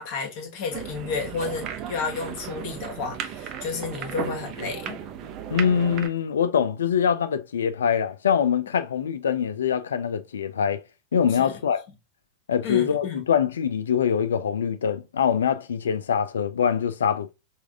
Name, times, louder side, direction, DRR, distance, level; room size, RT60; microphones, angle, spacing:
voice 1, 0.0-5.0 11.3-11.6 12.6-13.2, left 5 dB, 45° left, 1.2 m, -32 dB
sound 1, 0.7-6.1, right 8 dB, 35° right, 0.6 m, -35 dB
voice 2, 5.5-10.8 11.1-11.8 12.5-17.3, left 7 dB, 65° left, 0.4 m, -24 dB
4.7 x 2.4 x 3.4 m
figure-of-eight pair, 90°, 0 cm